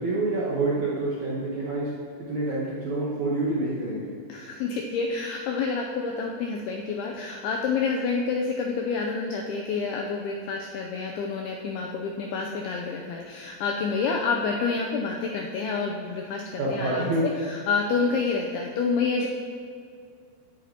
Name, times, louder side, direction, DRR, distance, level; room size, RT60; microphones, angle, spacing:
voice 1, 0.0-1.9 2.3-4.1 16.6-17.3, right 2 dB, 70° right, -7 dB, 1.8 m, -27 dB
voice 2, 4.3-19.3, left 4 dB, 85° left, 1 dB, 2.2 m, -28 dB
16.5 x 9.3 x 2.9 m, 2.3 s
omnidirectional pair, 5.3 m